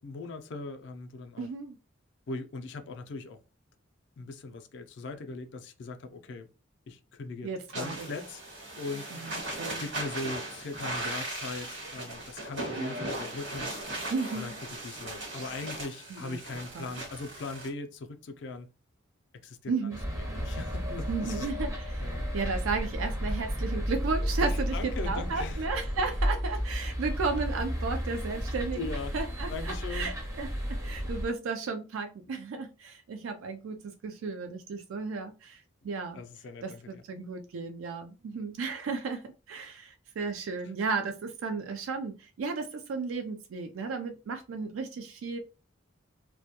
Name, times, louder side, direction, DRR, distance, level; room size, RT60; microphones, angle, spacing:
voice 1, 0.0-1.5 2.3-3.4 4.2-6.5 6.9-8.4 8.8-9.1 9.8-13.7 14.3-18.7 19.4-19.7 20.2-21.5 22.0-22.3 24.4-25.6 28.7-29.1 29.5-30.1 36.1-37.0, left 3 dB, 55° left, 0.3 m, -40 dB
voice 2, 1.4-1.8 7.4-8.1 9.2-9.8 14.1-14.6 16.1-16.4 16.7-16.9 19.7-20.0 21.1-22.0 22.3-30.5 30.8-36.2 36.6-45.4, right 4 dB, 80° right, 0.4 m, -34 dB
sound 1, 7.7-17.7, right 1 dB, 55° right, 1.1 m, -38 dB
sound 2, 19.9-31.3, equal, 15° right, 0.5 m, -32 dB
2.1 x 2.1 x 2.8 m
head